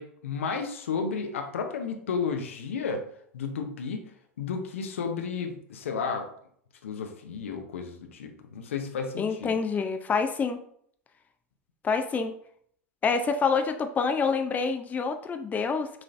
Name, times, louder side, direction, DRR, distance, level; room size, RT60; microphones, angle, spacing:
voice 1, 0.0-3.0 3.3-4.0 4.4-6.3 6.8-9.6, left 5 dB, 75° left, 4 dB, 0.7 m, -32 dB
voice 2, 9.2-10.6 11.8-12.3 13.0-15.9, left 5 dB, 25° left, 7 dB, 0.4 m, -27 dB
5.9 x 3.1 x 2.5 m, 0.65 s
hypercardioid pair, 85°, 7 cm